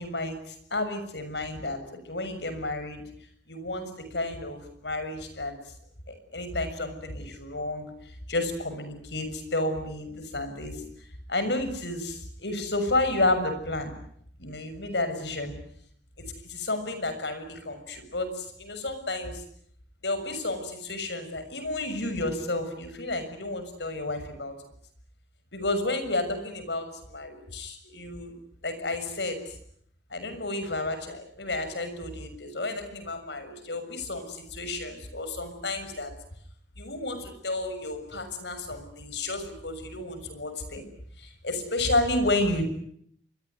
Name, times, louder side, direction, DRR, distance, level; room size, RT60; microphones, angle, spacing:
voice 1, 0.0-3.0 3.5-5.6 6.1-7.9 8.3-10.8 11.3-13.9 14.4-15.5 16.4-19.4 20.0-24.5 25.5-28.3 28.6-29.5 30.1-36.1 36.8-40.8 41.2-42.6, left 2 dB, 75° left, 9 dB, 6.6 m, -31 dB
28.0 x 22.5 x 9.5 m, 0.68 s
head